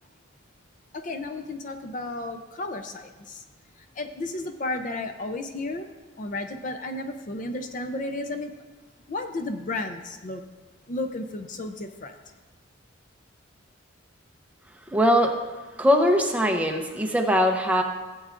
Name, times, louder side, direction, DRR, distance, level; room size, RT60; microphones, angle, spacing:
voice 1, 0.9-3.4 3.8-5.9 6.2-8.5 9.1-10.4 10.9-12.2, left 2 dB, 40° left, 7 dB, 0.5 m, -33 dB
voice 2, 14.9-15.4 15.8-17.8, equal, 5° right, 2 dB, 0.7 m, -21 dB
16.5 x 7.7 x 2.5 m, 1.3 s
head